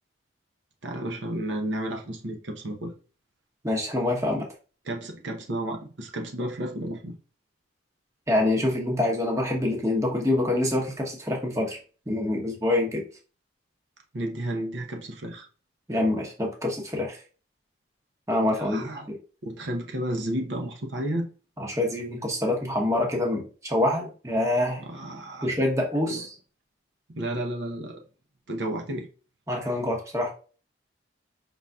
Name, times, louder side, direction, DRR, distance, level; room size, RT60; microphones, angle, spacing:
voice 1, 0.8-2.9 4.8-7.1 14.1-15.5 18.5-19.1 19.4-21.3 24.8-25.5 26.1-26.2 27.1-28.0 28.5-29.1, right 1 dB, 65° right, 0.8 m, -32 dB
voice 2, 3.6-4.5 8.3-11.8 12.1-13.0 15.9-17.2 18.3-19.2 21.6-24.8 25.4-26.3 29.5-30.3, left 1 dB, 15° right, 1.0 m, -26 dB
5.5 x 3.9 x 2.3 m
head